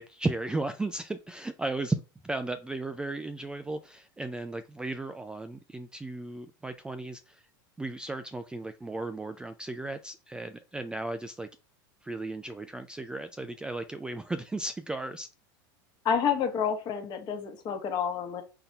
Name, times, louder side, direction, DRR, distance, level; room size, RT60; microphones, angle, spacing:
voice 1, 0.0-7.4 7.8-11.5 12.0-15.3, right 2 dB, 5° right, 9 dB, 0.3 m, -35 dB
voice 2, 16.0-18.4, left 7 dB, 40° left, 6 dB, 1.1 m, -29 dB
4.0 x 2.7 x 4.4 m, 0.32 s
supercardioid pair, 120°, 11 cm